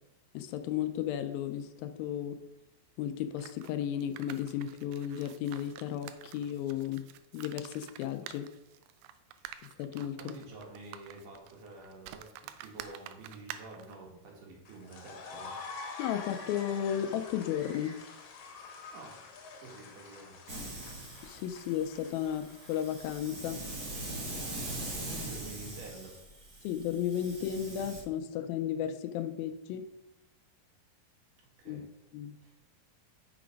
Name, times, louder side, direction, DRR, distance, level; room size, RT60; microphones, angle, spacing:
voice 1, 0.3-2.4 3.0-7.1 7.3-8.5 9.8-10.3 16.0-18.0 21.2-23.6 26.6-29.9 31.7-31.9 32.1-32.4, left 10 dB, 85° left, 8 dB, 2.3 m, -34 dB
sound 1, 3.4-14.0, right 12 dB, 90° right, 2.4 m, -49 dB
voice 2, 10.2-15.6 18.9-19.2 19.6-20.4 24.9-26.2 31.6-31.9 32.4-32.6, right 3 dB, 65° right, -1 dB, 3.2 m, -49 dB
sound 2, 14.7-24.0, left 4 dB, 65° left, 2.2 m, -47 dB
Hiss, 20.5-28.0, right 1 dB, 45° right, 1.4 m, -42 dB
5.9 x 5.9 x 5.1 m, 0.92 s
omnidirectional pair, 4.2 m